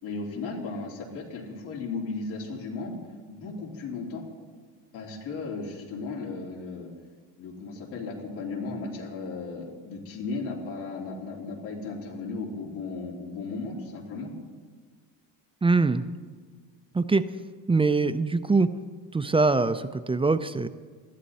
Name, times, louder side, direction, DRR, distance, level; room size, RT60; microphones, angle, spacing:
voice 1, 0.0-3.0 3.3-4.3 4.9-6.9 7.4-14.3, left 3 dB, 85° left, -2 dB, 3.6 m, -35 dB
voice 2, 15.6-16.0 16.9-17.2 17.7-18.7 19.1-20.7, right 3 dB, 15° right, 11 dB, 0.5 m, -23 dB
19.5 x 13.0 x 4.2 m, 1.5 s
cardioid pair, 105°, 43 cm